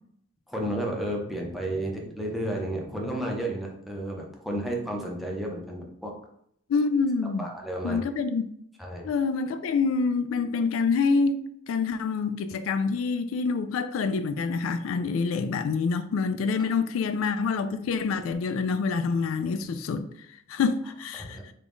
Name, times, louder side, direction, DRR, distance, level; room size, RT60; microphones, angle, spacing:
voice 1, 0.5-6.1 7.4-8.0 8.8-9.1 14.9-15.0 21.2-21.4, right 1 dB, ahead, 0.6 m, -32 dB
voice 2, 6.7-7.5 7.8-8.5 9.0-20.0 20.5-21.5, left 4 dB, 85° left, 0.3 m, -26 dB
3.8 x 2.3 x 3.5 m
head